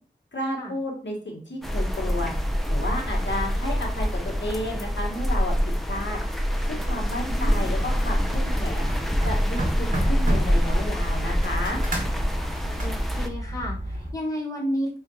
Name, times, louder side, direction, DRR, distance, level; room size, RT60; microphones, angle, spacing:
voice 1, 0.3-2.3 2.7-5.5 5.8-6.2 6.7-8.8 9.2-11.8, left 1 dB, 85° left, -1 dB, 1.2 m, -32 dB
sound 1, 1.6-13.3, equal, ahead, 0.6 m, -25 dB
voice 2, 7.2-7.7 12.8-15.0, equal, 20° left, -3 dB, 1.3 m, -31 dB
sound 2, 8.1-14.1, right 1 dB, 50° right, 1.2 m, -32 dB
5.6 x 2.4 x 2.7 m, 0.40 s
wide cardioid pair, 50°, 18 cm